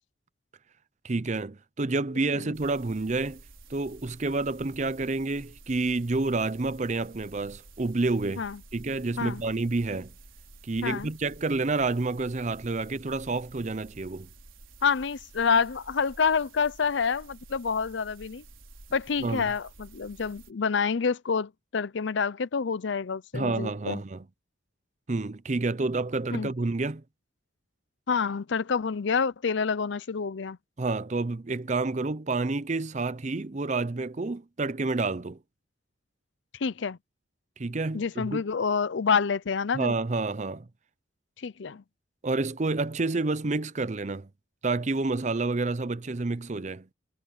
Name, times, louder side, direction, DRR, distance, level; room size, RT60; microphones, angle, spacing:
voice 1, 1.0-3.4 3.7-8.4 8.7-10.1 10.6-14.3 19.2-19.5 23.3-24.2 25.1-27.0 30.8-35.4 37.6-38.4 39.7-40.7 42.2-44.3 44.6-46.9, right 3 dB, 35° right, 0.6 m, -29 dB
sound 1, 2.5-20.5, right 2 dB, 90° right, 4.6 m, -51 dB
voice 2, 14.8-18.4 18.9-24.0 26.3-26.5 28.1-30.6 36.6-37.0 37.9-39.9 41.4-41.8, left 5 dB, 65° left, 0.5 m, -28 dB
head